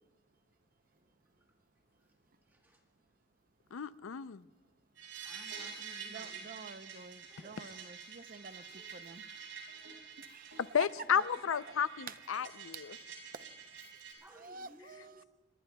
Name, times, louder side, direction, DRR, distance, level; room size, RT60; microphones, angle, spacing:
voice 1, 2.5-2.8 5.2-6.5 7.3-7.6 8.7-8.9 11.1-11.3 12.9-13.0 14.2-15.2, right 1 dB, 10° right, 1 dB, 1.3 m, -58 dB
voice 2, 3.7-4.4 7.6-7.7 10.6-13.0, left 7 dB, 85° left, 15 dB, 0.5 m, -33 dB
sound 1, 5.0-14.1, right 6 dB, 75° right, 6.0 m, -48 dB
voice 3, 6.1-8.6 8.9-9.2 10.2-10.6 11.1-11.2 14.4-15.2, right 4 dB, 45° right, 11 dB, 0.6 m, -50 dB
26.0 x 22.5 x 2.3 m, 1.2 s
head